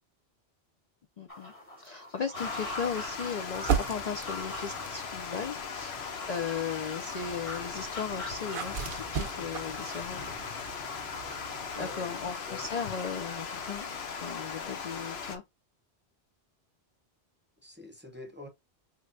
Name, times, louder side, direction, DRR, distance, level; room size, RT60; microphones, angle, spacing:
voice 1, 1.2-1.5 1.8-10.3 11.8-13.9 14.1-15.4, left 6 dB, 50° left, 0.5 m, -36 dB
sound 1, 1.3-14.0, left 1 dB, 30° left, 1.7 m, -45 dB
Water, 2.3-15.4, left 6 dB, 75° left, 1.1 m, -39 dB
sound 2, 3.5-5.1 5.8-12.0, right 8 dB, 60° right, 0.7 m, -37 dB
voice 2, 11.7-12.7 17.6-18.5, left 1 dB, 10° right, 0.8 m, -46 dB
5.7 x 3.2 x 2.5 m
omnidirectional pair, 1.1 m